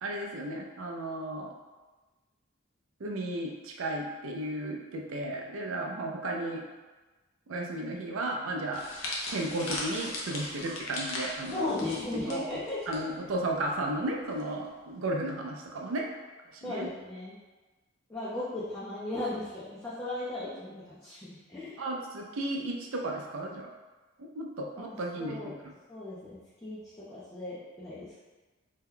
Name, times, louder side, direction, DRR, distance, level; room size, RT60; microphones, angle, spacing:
voice 1, 0.0-1.5 3.0-6.6 7.5-8.9 9.3-11.7 12.2-12.6 12.9-16.1 16.5-16.9 21.8-23.7 24.2-25.7, right 1 dB, 80° right, 1 dB, 0.5 m, -34 dB
sound 1, 8.7-13.0 13.3-13.5 14.4-14.7, left 2 dB, 70° left, 0.6 m, -38 dB
voice 2, 11.5-12.8 16.6-17.4 18.1-21.8 24.8-25.6 25.9-28.2, left 2 dB, 15° left, -10 dB, 0.5 m, -36 dB
2.8 x 2.2 x 3.7 m, 1.2 s
head